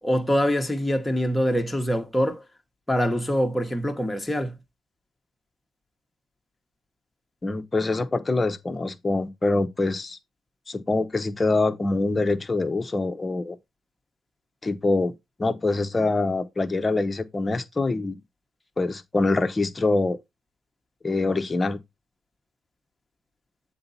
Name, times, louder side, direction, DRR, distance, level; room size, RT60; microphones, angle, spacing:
voice 1, 0.0-2.4 2.9-4.6, equal, 10° left, 1.3 m, -24 dB
voice 2, 7.4-10.2 10.7-13.6 14.6-15.1 15.4-18.2 18.8-20.2 21.0-21.8, left 3 dB, 25° left, 0.9 m, -24 dB
7.7 x 4.0 x 4.2 m
cardioid pair, 90°, 0 cm